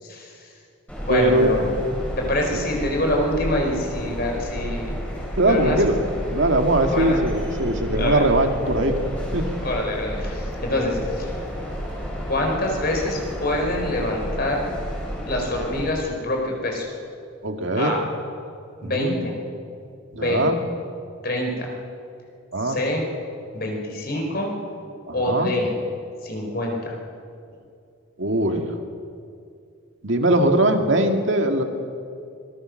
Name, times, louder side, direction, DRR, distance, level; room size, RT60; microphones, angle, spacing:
voice 1, 0.0-0.5 1.1-1.7 2.2-4.9 5.4-6.1 6.8-7.5 8.0-8.2 9.6-11.3 12.3-14.6 15.2-16.9 17.8-18.0 18.8-19.4 20.1-20.5 21.2-21.7 22.6-23.0 23.5-24.5 25.1-25.7 26.2-27.0, left 1 dB, 45° left, 1 dB, 4.5 m, -26 dB
sound 1, 0.9-15.9, equal, 5° left, 5.5 m, -31 dB
voice 2, 1.1-1.5 2.5-2.6 5.4-5.9 6.3-8.9 9.3-9.5 17.4-17.9 18.8-19.1 20.1-20.6 22.5-22.8 25.1-25.5 28.2-28.7 30.0-31.6, right 1 dB, 60° right, 4 dB, 2.1 m, -20 dB
25.5 x 21.5 x 6.5 m, 2.4 s
head